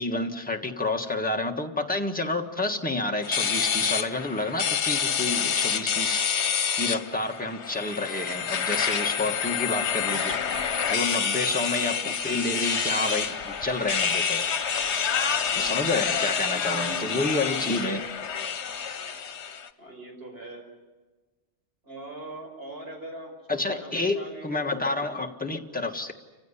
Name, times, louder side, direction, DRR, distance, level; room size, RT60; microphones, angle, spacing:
voice 1, 0.0-6.2 6.8-10.4 10.9-14.4 15.6-18.0 23.5-26.1, left 2 dB, 5° left, 2 dB, 1.6 m, -29 dB
sound 1, 3.2-19.7, left 7 dB, 75° left, 1.3 m, -28 dB
voice 2, 11.0-11.3 15.5-16.2 16.7-17.2 17.5-17.8 19.8-20.6 21.8-24.6 24.9-25.2, right 1 dB, 55° right, 1 dB, 5.7 m, -42 dB
29.0 x 16.0 x 9.9 m, 1.3 s
omnidirectional pair, 1.2 m